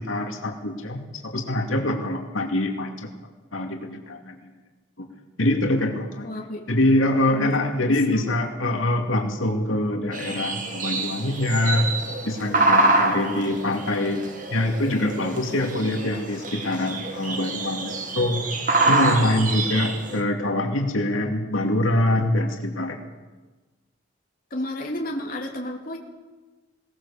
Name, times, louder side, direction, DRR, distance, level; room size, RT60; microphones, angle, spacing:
voice 1, 0.0-3.1 3.5-4.5 5.0-5.1 5.4-6.3 6.7-11.9 12.2-14.2 14.5-18.4 18.9-23.0, left 1 dB, 90° left, 3 dB, 2.4 m, -24 dB
voice 2, 6.2-6.6 7.4-8.3 24.5-26.0, left 1 dB, 45° left, 0 dB, 2.7 m, -32 dB
sound 1, 10.1-20.2, right 2 dB, 40° right, 2.1 m, -26 dB
21.0 x 18.0 x 7.2 m, 1.2 s
head